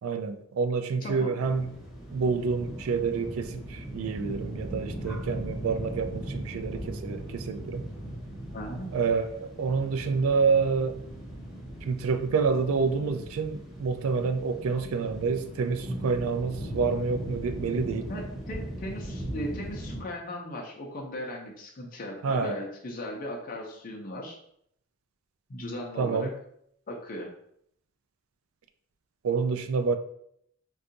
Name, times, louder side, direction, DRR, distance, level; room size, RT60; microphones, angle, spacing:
voice 1, 0.0-1.7 2.1-7.8 8.9-11.0 11.8-18.1 22.2-22.6 26.0-26.3 29.2-30.0, right 5 dB, 75° right, 0.3 m, -28 dB
voice 2, 1.0-1.4 8.5-8.9 18.1-24.4 25.5-26.3 26.9-27.3, left 1 dB, 40° left, 0.5 m, -37 dB
sound 1, 1.4-20.0, right 1 dB, ahead, 0.8 m, -38 dB
2.6 x 2.3 x 3.8 m
head